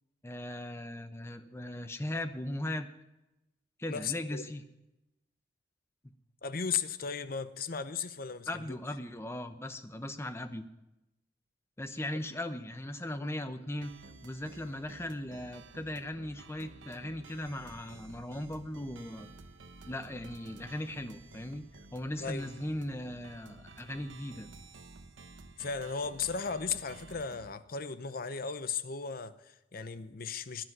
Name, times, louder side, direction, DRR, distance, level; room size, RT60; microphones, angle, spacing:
voice 1, 0.2-2.9 3.8-4.6 8.5-10.7 11.8-13.9 14.2-19.3 19.9-21.6 21.9-24.5, left 1 dB, 15° left, 9 dB, 0.8 m, -38 dB
voice 2, 3.9-4.4 6.4-8.8 22.2-22.5 25.6-30.6, left 6 dB, 50° left, 12 dB, 0.7 m, -36 dB
sound 1, 13.8-27.5, right 3 dB, 90° right, 1.1 m, -53 dB
16.0 x 10.5 x 6.0 m, 0.95 s
head